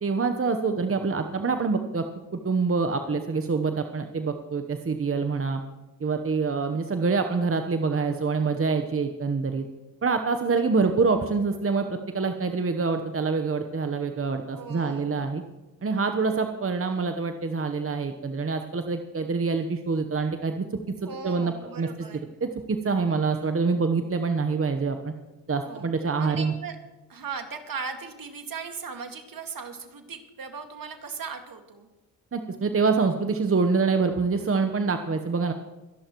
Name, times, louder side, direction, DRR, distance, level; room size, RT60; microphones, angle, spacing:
voice 1, 0.0-2.0 2.3-5.6 6.0-9.6 10.0-15.4 15.8-20.6 21.0-21.9 22.4-25.1 25.5-26.5 32.3-35.5, right 4 dB, 35° right, 6 dB, 1.1 m, -26 dB
voice 2, 14.5-15.2 21.0-22.3 25.6-25.9 26.2-26.8 27.1-31.9, right 5 dB, 55° right, 5 dB, 2.1 m, -38 dB
24.5 x 11.0 x 3.1 m, 1.1 s
supercardioid pair, 55°, 41 cm